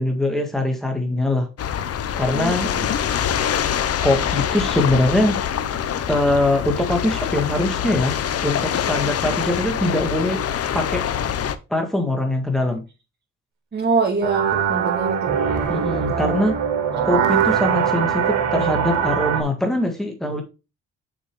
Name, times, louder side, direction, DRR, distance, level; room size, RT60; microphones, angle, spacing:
voice 1, 0.0-1.5 2.2-2.7 4.0-5.4 6.1-8.2 8.4-10.4 10.7-11.1 11.7-12.8 15.7-16.6 17.0-20.4, left 1 dB, ahead, 1.7 m, -22 dB
sound 1, 1.6-11.5, left 9 dB, 50° left, 0.8 m, -24 dB
voice 2, 2.3-2.9 9.0-9.3 13.7-15.4 15.9-16.4, right 4 dB, 35° right, 2.5 m, -25 dB
sound 2, 14.2-19.4, right 7 dB, 80° right, 1.9 m, -22 dB
6.6 x 5.6 x 3.3 m
cardioid pair, 90°, 30 cm